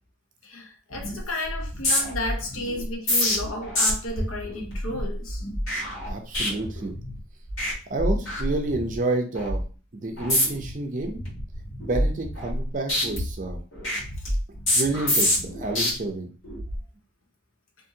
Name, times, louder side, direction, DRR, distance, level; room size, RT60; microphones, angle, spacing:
voice 1, 0.4-5.4 14.2-14.3, left 1 dB, 85° left, 2 dB, 0.8 m, -33 dB
sound 1, 0.9-1.2 1.5-7.2 7.5-7.7 8.0-9.0 9.4-9.6 10.2-10.7 11.1-12.6 12.9-15.9 16.4-16.8, left 1 dB, 70° left, 1.4 m, -27 dB
voice 2, 6.0-6.9 7.9-9.6 9.9-11.2 11.8-13.6 14.7-16.3, right 2 dB, 40° right, 3 dB, 0.5 m, -29 dB
2.6 x 2.6 x 2.7 m, 0.37 s
head